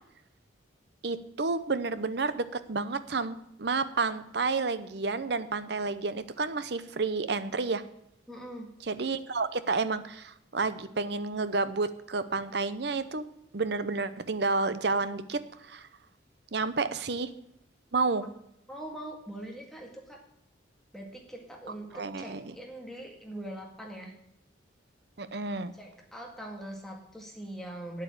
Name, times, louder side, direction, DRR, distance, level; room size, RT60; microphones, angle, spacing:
voice 1, 1.0-7.8 8.8-13.3 13.5-15.9 16.5-17.3 17.9-18.2 21.9-22.5 25.2-25.7, right 3 dB, 55° right, 13 dB, 0.7 m, -30 dB
voice 2, 8.3-8.7 18.7-20.2 20.9-24.1 25.8-28.0, right 1 dB, ahead, 0 dB, 1.8 m, -42 dB
9.2 x 8.1 x 7.2 m, 0.76 s
head